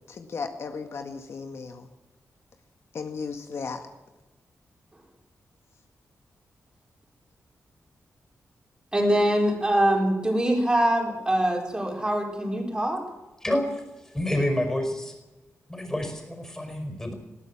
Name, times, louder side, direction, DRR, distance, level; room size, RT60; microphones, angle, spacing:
voice 1, 0.1-1.9 2.9-3.9, left 5 dB, 55° left, 5 dB, 1.8 m, -35 dB
voice 2, 8.9-13.0, right 1 dB, 15° right, 1 dB, 4.4 m, -23 dB
voice 3, 13.4-15.1 15.7-17.1, left 1 dB, 10° left, 5 dB, 5.0 m, -28 dB
20.5 x 18.0 x 7.3 m, 1.1 s
wide cardioid pair, 175°, 5 cm